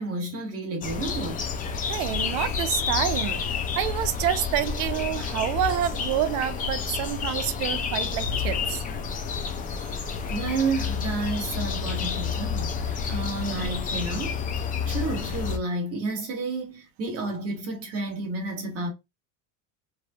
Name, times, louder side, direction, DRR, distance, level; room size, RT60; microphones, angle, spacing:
voice 1, 0.0-1.5 10.3-18.9, right 3 dB, 40° right, 1.1 m, -31 dB
sound 1, 0.8-15.6, left 6 dB, 25° left, 0.4 m, -29 dB
voice 2, 1.9-3.4 3.8-8.8, right 11 dB, 65° right, 0.6 m, -28 dB
3.1 x 2.7 x 2.3 m
cardioid pair, 145°, 39 cm